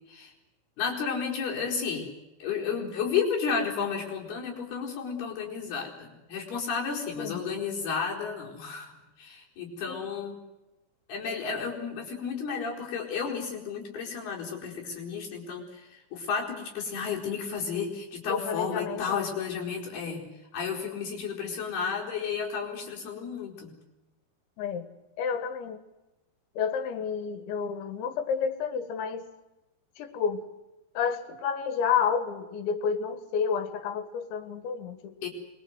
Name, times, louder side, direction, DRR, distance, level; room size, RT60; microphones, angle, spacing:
voice 1, 0.8-2.1 2.4-10.4 11.1-20.3 20.5-23.8 35.2-35.3, left 6 dB, 60° left, -1 dB, 6.3 m, -32 dB
voice 2, 18.3-19.3 24.6-24.9 25.2-25.8 26.6-29.3 30.0-30.5 31.0-35.2, left 6 dB, 90° left, 10 dB, 4.1 m, -30 dB
25.5 x 22.0 x 8.1 m, 1.0 s
omnidirectional pair, 5.1 m